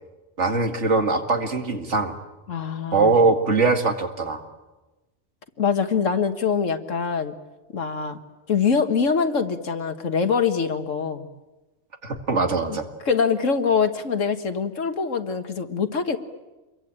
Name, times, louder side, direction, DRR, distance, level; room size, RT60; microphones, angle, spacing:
voice 1, 0.4-2.1 2.9-4.4 12.0-12.8, right 3 dB, 70° right, 5 dB, 2.5 m, -21 dB
voice 2, 2.5-3.2 5.6-7.3 7.7-8.2 8.5-11.3 12.7-12.8 13.1-16.2, left 6 dB, 85° left, 8 dB, 1.9 m, -24 dB
27.5 x 22.5 x 8.9 m, 1.1 s
omnidirectional pair, 1.3 m